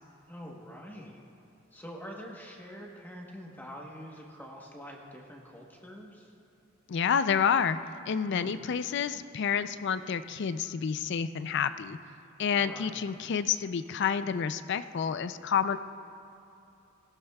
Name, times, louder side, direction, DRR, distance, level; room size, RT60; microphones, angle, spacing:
voice 1, 0.3-1.2 1.7-6.3 8.3-8.6 12.5-13.0, equal, 10° left, -1 dB, 1.1 m, -45 dB
voice 2, 6.9-7.8 8.1-12.0 12.4-15.8, left 7 dB, 60° left, 13 dB, 0.4 m, -29 dB
18.5 x 12.0 x 2.3 m, 2.8 s
head